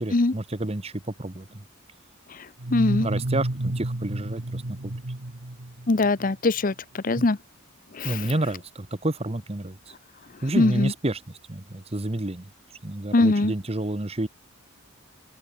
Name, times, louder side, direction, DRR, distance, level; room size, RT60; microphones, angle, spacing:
voice 1, 0.0-1.6 3.0-4.9 7.1-7.3 8.0-9.9 10.4-12.5 12.8-14.3, right 1 dB, 30° right, 1.2 m, -29 dB
giant dog II, 2.6-6.3, right 1 dB, 65° right, 1.7 m, -30 dB
voice 2, 2.7-3.1 5.9-7.4 7.9-8.2 10.6-10.9 13.1-13.5, left 2 dB, 40° left, 0.7 m, -21 dB
open air
head